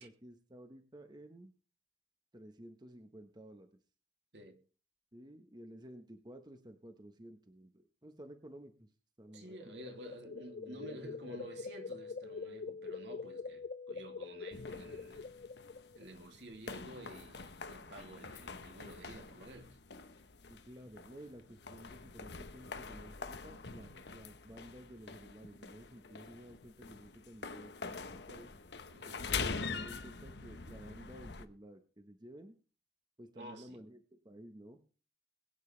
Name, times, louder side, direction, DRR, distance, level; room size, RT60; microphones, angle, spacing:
voice 1, 0.0-1.5 2.3-3.8 5.1-8.9 9.2-11.5 20.5-28.5 29.3-32.6 33.2-34.8, right 1 dB, 25° right, 1.1 m, -53 dB
sound 1, 9.3-16.0, left 4 dB, 50° left, 0.5 m, -45 dB
voice 2, 9.3-15.3 15.9-19.8 28.9-29.2 33.3-33.8, right 1 dB, 70° right, 2.8 m, -51 dB
sound 2, 14.5-31.4, left 4 dB, 65° left, 1.0 m, -45 dB
21.5 x 9.2 x 3.3 m
head